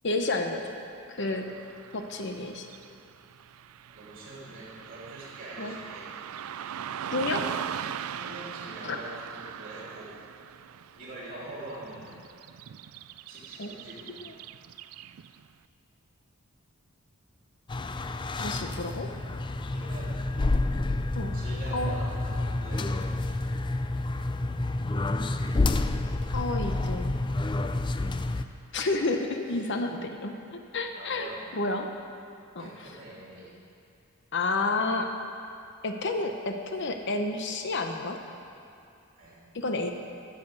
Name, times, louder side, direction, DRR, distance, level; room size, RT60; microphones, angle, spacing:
voice 1, 0.0-0.7 1.1-1.5 1.9-2.7 5.6-5.7 7.1-7.5 8.8-9.0 13.6-13.7 14.2-14.3 18.4-19.1 21.1-21.4 21.7-21.9 26.3-27.1 28.7-31.9 32.5-32.9 34.3-35.1 35.8-38.2 39.5-39.9, left 2 dB, 55° left, 5 dB, 0.8 m, -30 dB
Car passing by / Traffic noise roadway noise, 1.2-15.5, right 9 dB, 75° right, 0.4 m, -40 dB
voice 2, 3.9-6.1 8.2-10.1 10.9-12.1 13.3-14.2 19.7-20.2 21.3-23.0 29.6-29.7 30.9-31.4 32.6-33.5 39.1-39.4, right 2 dB, 40° right, -6 dB, 3.2 m, -44 dB
sound 1, 17.7-28.4, left 2 dB, 20° left, 0.4 m, -29 dB
12.5 x 7.5 x 8.1 m, 2.5 s
head